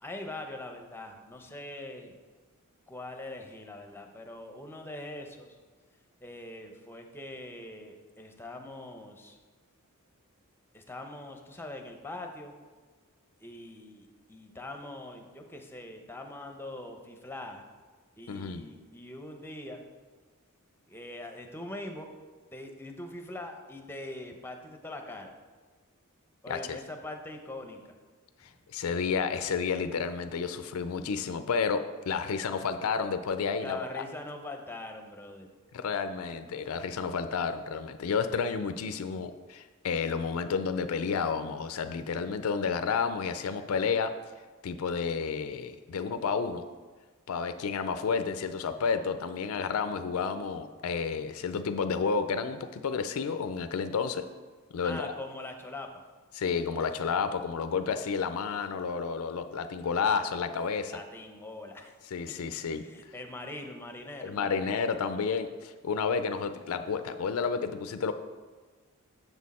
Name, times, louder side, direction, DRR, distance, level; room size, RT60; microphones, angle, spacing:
voice 1, 0.0-2.1 2.9-5.6 6.2-9.4 10.7-12.5 13.4-17.6 18.2-19.8 20.9-22.1 22.5-25.3 26.4-27.9 33.6-35.5 54.8-56.0 60.9-62.0 62.7-64.8, left 2 dB, 10° left, 4 dB, 0.6 m, -42 dB
voice 2, 18.3-18.7 26.5-26.8 28.4-34.0 35.7-44.1 44.6-46.6 47.3-54.2 54.7-55.1 56.4-61.0 62.1-62.9 64.2-68.1, left 5 dB, 70° left, 9 dB, 0.4 m, -31 dB
6.9 x 6.2 x 4.2 m, 1.4 s
head